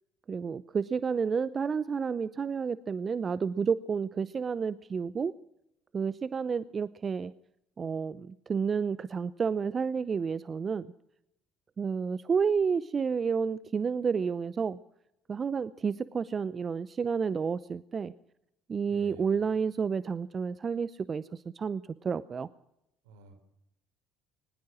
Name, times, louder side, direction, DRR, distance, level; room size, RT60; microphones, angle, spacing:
voice 1, 0.3-5.3 5.9-7.3 7.8-10.9 11.8-14.8 15.3-18.1 18.7-22.5, right 6 dB, 35° right, 17 dB, 0.7 m, -30 dB
voice 2, 18.8-19.5 23.0-23.4, right 5 dB, 75° right, 9 dB, 4.0 m, -51 dB
21.0 x 20.0 x 6.2 m, 0.83 s
hypercardioid pair, 55°, 0 cm